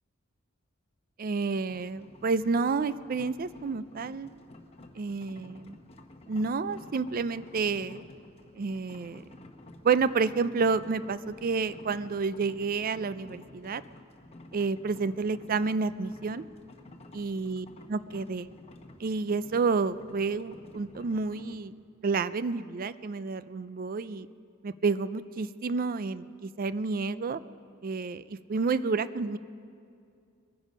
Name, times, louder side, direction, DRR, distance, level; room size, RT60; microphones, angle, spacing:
voice 1, 1.2-4.3 4.9-5.8 6.3-8.0 8.5-9.2 9.8-13.8 14.5-16.4 17.1-18.5 19.0-21.7 22.0-24.3 24.6-27.4 27.8-29.4, right 4 dB, 45° right, 15 dB, 0.4 m, -30 dB
sound 1, 1.7-21.5, left 2 dB, 30° left, 0.9 m, -52 dB
23.0 x 10.0 x 5.3 m, 2.4 s
head